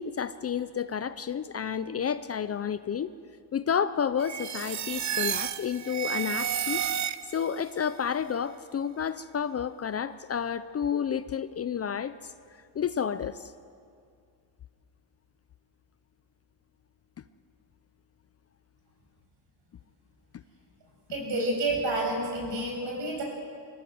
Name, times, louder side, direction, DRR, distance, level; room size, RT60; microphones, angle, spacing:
voice 1, 0.0-3.1 3.5-6.8 7.3-12.3 12.7-13.5, left 7 dB, 30° left, 13 dB, 0.6 m, -30 dB
sound 1, 4.2-7.6, right 9 dB, 40° right, 0.7 m, -31 dB
voice 2, 21.1-23.2, right 2 dB, 65° right, 0 dB, 7.8 m, -29 dB
24.0 x 17.0 x 7.8 m, 2.3 s
cardioid pair, 115°, 46 cm